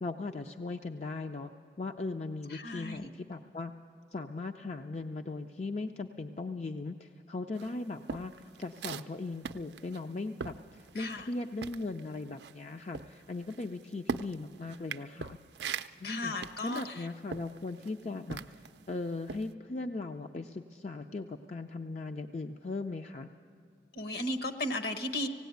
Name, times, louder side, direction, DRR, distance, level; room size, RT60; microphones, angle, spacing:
voice 1, 0.0-1.5 1.8-3.7 4.1-15.4 16.0-16.3 16.6-23.3, left 3 dB, 40° left, 5 dB, 0.5 m, -38 dB
voice 2, 2.5-3.1 10.9-11.3 16.0-17.1 23.9-25.3, left 1 dB, 60° left, 8 dB, 1.1 m, -35 dB
sound 1, 7.6-11.3 11.6-18.8 19.2-19.5, right 5 dB, 70° right, 0.5 m, -41 dB
17.5 x 17.0 x 9.3 m, 2.3 s
head